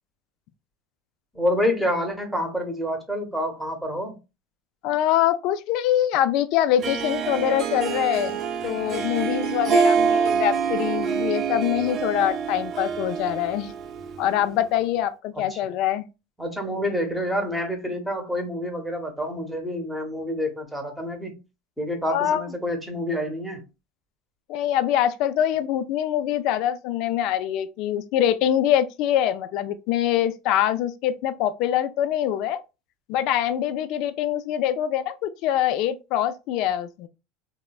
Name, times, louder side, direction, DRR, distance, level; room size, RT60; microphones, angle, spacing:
voice 1, 1.3-4.1 15.4-15.6 16.4-21.4 21.8-23.6, equal, ahead, 0.8 m, -28 dB
voice 2, 4.8-13.7 14.2-16.1 22.1-22.4 24.5-32.6 33.1-37.1, left 11 dB, 60° left, 0.3 m, -24 dB
Harp, 6.8-14.5, right 6 dB, 45° right, 0.6 m, -26 dB
3.2 x 2.1 x 2.3 m
supercardioid pair, 125°, 0 cm